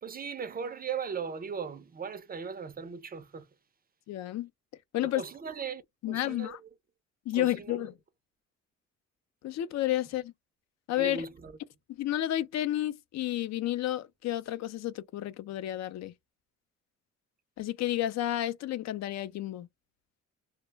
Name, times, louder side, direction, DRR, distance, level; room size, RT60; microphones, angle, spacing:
voice 1, 0.0-3.5 5.0-5.8 6.1-6.6 7.3-7.9 11.0-11.5, right 6 dB, 30° right, 0.4 m, -38 dB
voice 2, 4.1-4.5 4.9-5.2 6.0-6.6 7.3-7.9 9.4-10.3 10.9-11.3 12.0-16.1 17.6-19.7, left 13 dB, 65° left, 0.4 m, -31 dB
2.1 x 2.0 x 3.1 m
cardioid pair, 90°, 30 cm